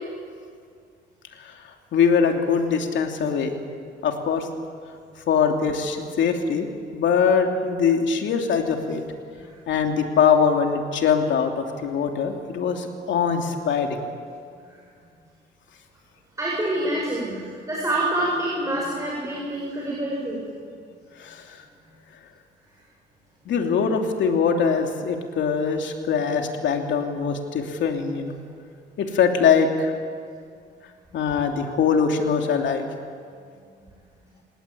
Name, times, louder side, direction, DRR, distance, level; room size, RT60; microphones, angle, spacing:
voice 1, 1.9-3.5 4.0-4.5 5.3-9.0 9.7-14.0 21.2-21.6 23.5-28.4 29.0-29.9 31.1-32.9, left 6 dB, 80° left, 3 dB, 2.9 m, -22 dB
voice 2, 16.4-20.4, right 1 dB, 15° right, -4 dB, 6.7 m, -26 dB
28.0 x 19.5 x 8.6 m, 2.2 s
cardioid pair, 120°, 19 cm